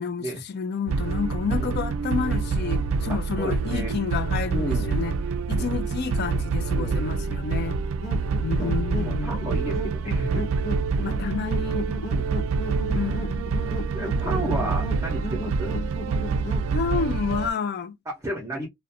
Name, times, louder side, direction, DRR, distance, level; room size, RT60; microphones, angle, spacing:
voice 1, 0.0-5.1 5.5-7.8 8.4-9.5 11.0-11.9 12.9-13.5 14.2-14.9 15.5-16.0 16.7-17.9, left 6 dB, 50° left, 0.4 m, -30 dB
sound 1, 0.9-17.5, right 4 dB, 75° right, 0.3 m, -26 dB
voice 2, 1.5-1.8 3.1-4.0 4.5-5.0 5.5-5.7 6.7-7.0 8.6-8.7 9.0-10.5 12.1-12.3 13.6-15.7 18.1-18.7, right 1 dB, 15° right, 0.6 m, -33 dB
sound 2, 8.0-16.7, left 1 dB, 80° left, 1.0 m, -36 dB
2.4 x 2.1 x 2.7 m
head